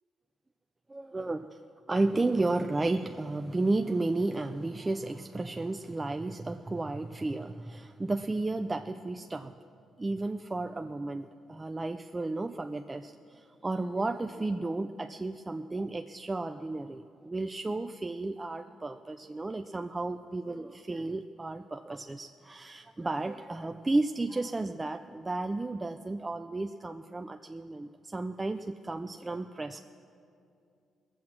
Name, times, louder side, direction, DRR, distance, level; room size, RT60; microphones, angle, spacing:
voice 1, 0.9-1.5 1.9-9.5 10.0-29.8, right 2 dB, 20° right, 6 dB, 0.4 m, -33 dB
20.5 x 7.7 x 6.0 m, 2.5 s
cardioid pair, 90°, 0 cm